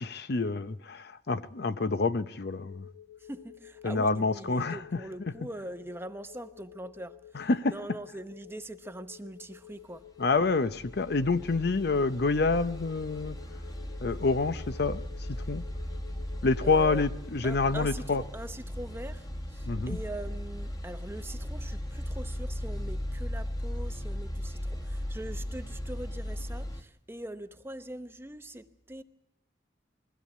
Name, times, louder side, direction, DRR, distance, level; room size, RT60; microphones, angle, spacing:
voice 1, 0.0-2.8 3.8-5.0 7.4-7.7 10.2-13.4 14.0-15.0 15.5-15.6 16.4-18.2 19.7-20.0, left 3 dB, 65° left, 0.7 m, -27 dB
sound 1, 2.4-17.3, left 11 dB, 40° left, 1.1 m, -52 dB
voice 2, 3.2-10.0 16.6-17.0 17.4-29.0, right 1 dB, 15° right, 0.8 m, -42 dB
sound 2, 10.3-26.8, equal, 20° left, 1.4 m, -37 dB
21.5 x 16.5 x 8.5 m
head